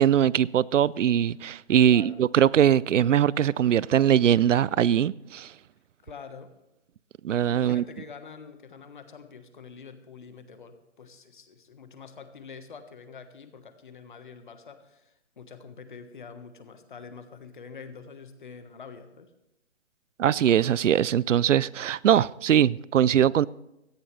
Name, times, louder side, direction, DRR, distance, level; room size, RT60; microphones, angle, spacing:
voice 1, 0.0-5.5 7.2-7.8 20.2-23.5, right 10 dB, 85° right, 0.5 m, -21 dB
voice 2, 1.8-2.2 6.0-6.5 7.5-19.3, left 5 dB, 40° left, 1.3 m, -46 dB
17.0 x 13.5 x 3.2 m
hypercardioid pair, 170°, 36 cm